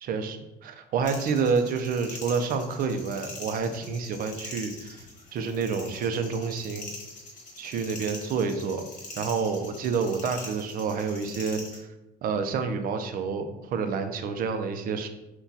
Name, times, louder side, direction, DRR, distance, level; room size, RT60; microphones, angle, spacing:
voice 1, 0.0-5.0 5.3-6.9 7.6-8.9 9.2-11.9 12.2-15.1, right 5 dB, 60° right, 7 dB, 0.5 m, -29 dB
sound 1, 1.0-11.8, left 2 dB, 45° left, 1.1 m, -43 dB
5.8 x 2.3 x 2.7 m, 0.96 s
cardioid pair, 110°, 17 cm